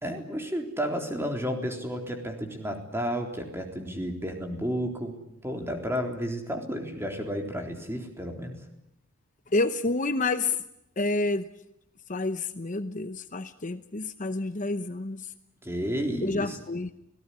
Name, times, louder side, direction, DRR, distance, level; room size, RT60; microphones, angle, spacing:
voice 1, 0.0-5.2 5.4-8.6 15.6-16.6, equal, 10° right, 3 dB, 3.8 m, -32 dB
voice 2, 9.5-10.6 11.0-11.5 12.1-15.3 16.2-16.9, left 2 dB, 35° left, 10 dB, 0.9 m, -29 dB
25.5 x 18.5 x 10.0 m, 0.85 s
head